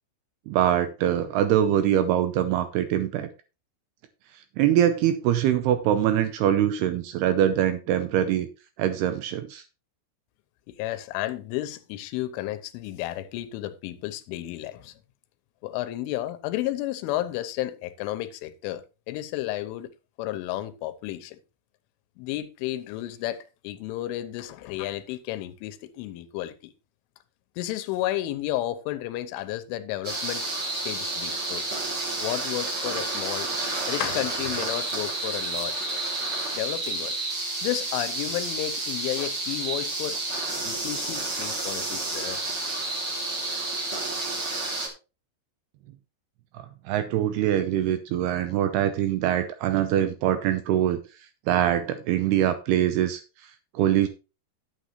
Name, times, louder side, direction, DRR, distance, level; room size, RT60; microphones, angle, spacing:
voice 1, 0.5-3.3 4.6-8.5 8.8-9.6 46.5-51.0 51.5-54.1, right 11 dB, 80° right, 2.3 m, -23 dB
voice 2, 10.7-14.9 15.6-19.9 20.2-21.4 22.2-26.7 27.6-30.5 30.8-31.7 32.2-35.9 36.5-37.1 37.6-40.2 40.6-42.4, left 14 dB, 90° left, 3.3 m, -32 dB
sound 1, 30.0-44.9, right 2 dB, 30° right, 2.1 m, -30 dB
9.8 x 9.4 x 3.1 m
omnidirectional pair, 5.5 m